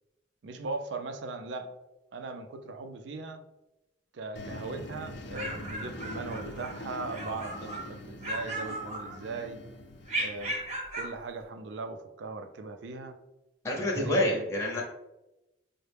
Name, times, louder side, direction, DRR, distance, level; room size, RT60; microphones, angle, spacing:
voice 1, 0.4-1.7 2.1-3.4 4.1-9.6 10.2-10.5 10.9-13.2 13.7-14.5, right 3 dB, 70° right, 7 dB, 0.4 m, -39 dB
sound 1, 4.3-10.8, left 1 dB, 70° left, 0.5 m, -44 dB
sound 2, 5.1-6.8 7.1-7.9 8.2-9.5 10.1-11.2, right 1 dB, 35° right, 0.7 m, -36 dB
voice 2, 13.6-14.8, left 1 dB, 15° left, -3 dB, 0.6 m, -27 dB
5.4 x 2.1 x 3.3 m, 0.97 s
head